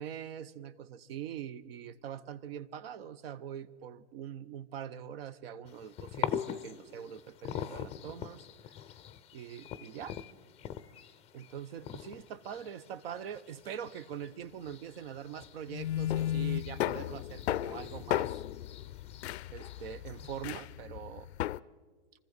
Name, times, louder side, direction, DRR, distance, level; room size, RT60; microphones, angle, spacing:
voice 1, 0.0-8.5 9.3-10.2 11.3-18.4 19.5-21.3, right 9 dB, 60° right, 17 dB, 0.8 m, -43 dB
sound 1, 5.6-20.6, left 10 dB, 20° left, 0.5 m, -44 dB
sound 2, 15.7-21.6, left 13 dB, 75° left, 0.5 m, -34 dB
24.5 x 14.5 x 4.0 m, 1.4 s
hypercardioid pair, 125°, 34 cm